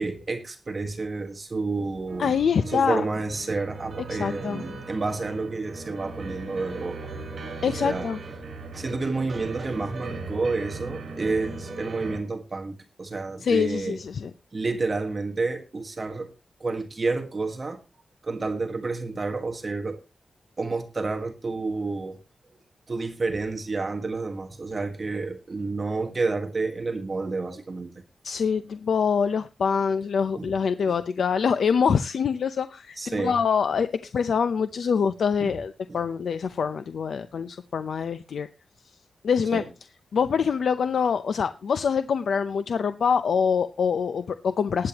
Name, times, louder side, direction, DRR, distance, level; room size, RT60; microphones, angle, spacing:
voice 1, 0.0-2.4 2.7-7.1 7.7-8.1 8.7-14.0 14.5-16.3 16.6-17.8 18.2-20.0 20.6-22.2 22.9-27.9 30.3-30.5 30.9-31.0 33.0-33.4 35.4-35.6 35.9-36.0 39.5-39.6, right 3 dB, 30° right, 4 dB, 1.6 m, -30 dB
sound 1, 2.1-12.2, right 3 dB, 65° right, 4.9 m, -38 dB
voice 2, 2.2-3.1 4.1-4.6 7.6-8.2 13.4-14.3 28.2-38.5 39.2-39.6 40.1-44.9, left 6 dB, 75° left, 10 dB, 0.6 m, -25 dB
19.5 x 8.8 x 3.0 m, 0.28 s
wide cardioid pair, 160°, 0 cm